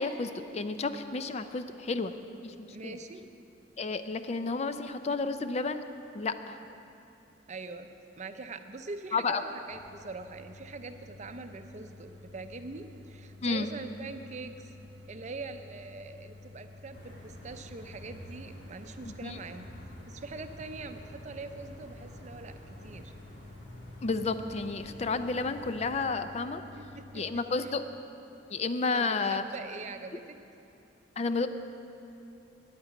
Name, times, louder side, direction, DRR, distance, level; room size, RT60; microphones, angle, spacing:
voice 1, 0.0-2.1 2.4-3.0 3.8-5.8 6.1-6.6 9.1-9.4 13.4-13.7 19.1-19.4 24.0-26.6 27.1-27.8 28.5-29.4 31.2-31.5, left 3 dB, 35° left, 10 dB, 0.4 m, -31 dB
voice 2, 2.7-3.2 7.5-14.7 15.1-19.7 20.1-23.1 26.8-27.7 28.9-30.4, right 3 dB, 40° right, 8 dB, 0.6 m, -43 dB
sound 1, 9.7-27.4, left 2 dB, 85° right, 0.8 m, -51 dB
sound 2, 16.9-25.9, equal, 80° left, 2.0 m, -49 dB
10.5 x 8.7 x 8.2 m, 2.8 s
head